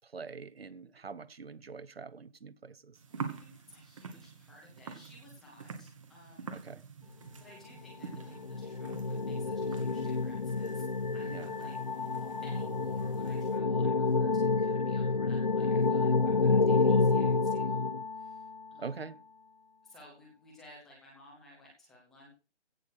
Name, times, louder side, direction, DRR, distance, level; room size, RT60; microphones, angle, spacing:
voice 1, 0.0-3.0 6.5-6.8 11.3-11.5 18.8-19.2, right 5 dB, 55° right, 0.9 m, -44 dB
sound 1, 2.9-13.6, right 5 dB, 25° right, 1.7 m, -47 dB
voice 2, 3.1-6.7 7.0-10.8 11.1-17.9 18.1-19.1 19.8-22.3, left 1 dB, ahead, 0.8 m, -57 dB
sound 2, 7.9-18.6, left 4 dB, 40° left, 0.5 m, -29 dB
16.5 x 6.4 x 6.4 m
figure-of-eight pair, 160°, 35 cm